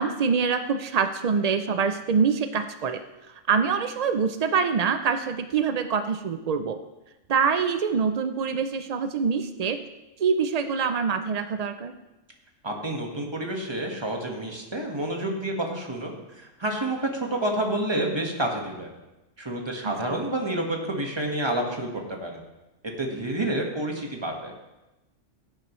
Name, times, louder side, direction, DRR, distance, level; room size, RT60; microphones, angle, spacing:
voice 1, 0.0-6.8 7.3-9.9 10.2-11.9 19.8-19.9, right 6 dB, 80° right, 9 dB, 0.3 m, -25 dB
voice 2, 12.6-18.9 19.4-22.4 23.0-24.5, right 1 dB, 20° right, 1 dB, 1.5 m, -29 dB
16.5 x 8.9 x 3.1 m, 1.0 s
omnidirectional pair, 1.3 m